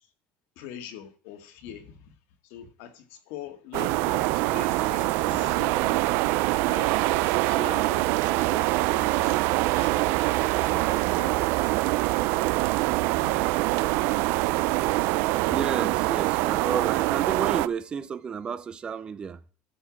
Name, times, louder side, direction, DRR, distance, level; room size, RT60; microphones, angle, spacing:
voice 1, 0.6-2.1 2.4-6.2 6.6-10.0 10.6-11.7 12.9-13.5, left 9 dB, 85° left, 1.8 m, -43 dB
sound 1, 3.7-17.7, right 19 dB, 75° right, 0.4 m, -24 dB
voice 2, 15.4-19.4, right 6 dB, 25° right, 0.5 m, -32 dB
12.5 x 5.6 x 5.9 m
cardioid pair, 165°, 4 cm